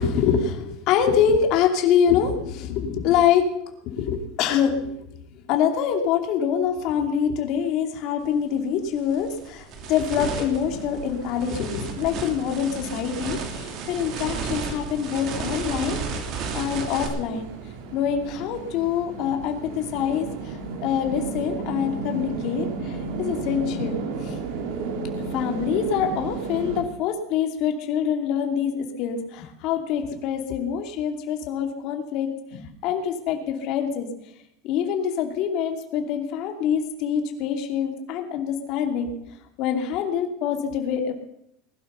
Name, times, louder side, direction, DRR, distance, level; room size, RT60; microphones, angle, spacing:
voice 1, 0.0-3.4 3.8-5.0 5.3-17.5 17.9-24.4 25.3-34.1 34.6-39.1 39.6-41.2, left 8 dB, 50° left, 4 dB, 2.7 m, -25 dB
sound 1, 8.2-8.4 8.9-17.1, right 5 dB, 45° right, 3.0 m, -33 dB
sound 2, 10.6-26.8, right 4 dB, 70° right, 3.3 m, -34 dB
20.0 x 12.0 x 5.6 m, 0.78 s
supercardioid pair, 145°, 0 cm